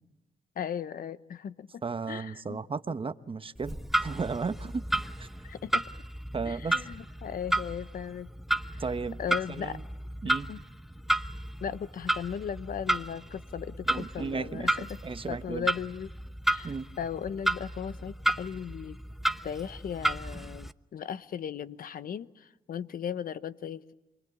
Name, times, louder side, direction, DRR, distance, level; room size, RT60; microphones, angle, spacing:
voice 1, 0.6-1.7 2.1-2.6 5.4-5.8 6.4-8.3 8.7-8.8 9.2-9.8 10.2-10.6 11.6-15.0 15.3-16.1 16.5-19.0 19.4-23.9, left 8 dB, 70° left, 1.0 m, -37 dB
voice 2, 1.8-3.8 4.0-4.8 5.2-5.3 6.3-6.8 8.8-9.2 9.5-9.8 10.2-10.5 13.9-15.6 16.6-16.9, right 4 dB, 35° right, 1.1 m, -34 dB
Clock, 3.6-20.7, right 1 dB, ahead, 0.9 m, -33 dB
28.5 x 22.0 x 8.4 m
cardioid pair, 70°, 15 cm